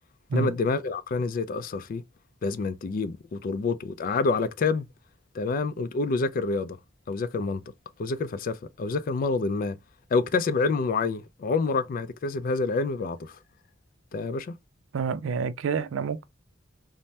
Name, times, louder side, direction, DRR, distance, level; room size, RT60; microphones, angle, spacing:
voice 1, 0.3-2.0 2.4-4.9 5.3-6.8 7.1-7.6 8.0-9.8 10.1-13.4 14.1-14.6, left 4 dB, 45° left, 0.3 m, -27 dB
voice 2, 14.9-16.2, right 5 dB, 90° right, 0.4 m, -28 dB
3.2 x 2.1 x 2.7 m
head